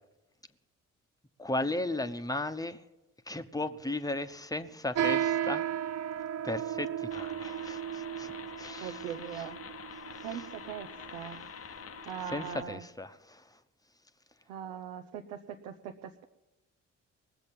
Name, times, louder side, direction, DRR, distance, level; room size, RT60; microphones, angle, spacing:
voice 1, 1.4-2.8 3.3-5.7 6.4-8.3 8.6-9.0 10.3-10.4 12.3-13.4, left 2 dB, 10° left, 1.0 m, -35 dB
sound 1, 4.9-12.7, right 10 dB, 45° right, 0.7 m, -35 dB
sound 2, 7.1-12.6, left 7 dB, 40° left, 0.9 m, -46 dB
voice 2, 8.8-9.6 10.2-11.5 12.0-12.9 14.5-16.2, right 8 dB, 75° right, 0.8 m, -41 dB
19.5 x 7.7 x 7.3 m
hypercardioid pair, 45°, 36 cm